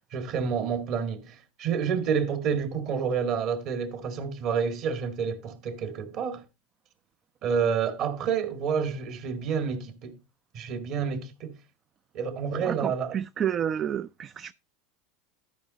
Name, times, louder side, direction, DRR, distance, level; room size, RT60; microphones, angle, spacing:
voice 1, 0.1-6.4 7.4-10.2 10.5-11.5 12.1-13.2, right 6 dB, 50° right, 1.9 m, -29 dB
voice 2, 12.6-14.5, right 9 dB, 35° right, 0.4 m, -30 dB
13.0 x 5.4 x 3.9 m
hypercardioid pair, 90°, 0 cm